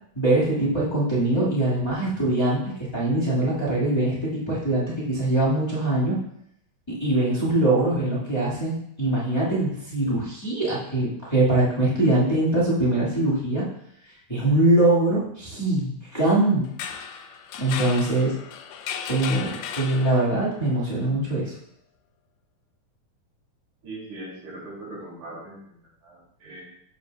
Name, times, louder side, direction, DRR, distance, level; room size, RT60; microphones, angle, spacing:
voice 1, 0.1-6.1 7.0-13.6 14.3-16.6 17.6-18.3 19.1-21.5, right 2 dB, 30° left, -9 dB, 0.5 m, -22 dB
sound 1, 16.6-20.5, left 8 dB, 80° left, 1.6 m, -35 dB
voice 2, 23.8-26.6, right 2 dB, 70° right, -5 dB, 3.7 m, -40 dB
6.8 x 6.8 x 2.2 m, 0.75 s
omnidirectional pair, 3.5 m